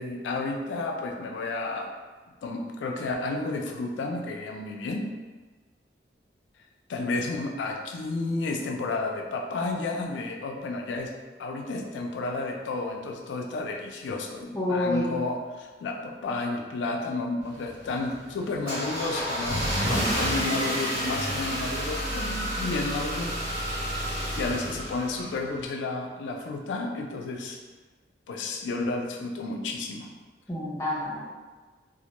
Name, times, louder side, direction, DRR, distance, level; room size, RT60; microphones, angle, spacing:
voice 1, 0.0-1.9 2.4-5.1 6.9-11.1 11.4-23.3 24.4-27.6 28.3-30.1, left 3 dB, 85° left, 2 dB, 0.3 m, -31 dB
voice 2, 14.5-15.1 30.5-31.2, left 2 dB, 15° left, -6 dB, 0.5 m, -28 dB
Car / Engine starting, 17.4-25.6, equal, 50° right, 1.2 m, -30 dB
2.1 x 2.0 x 2.8 m, 1.3 s
head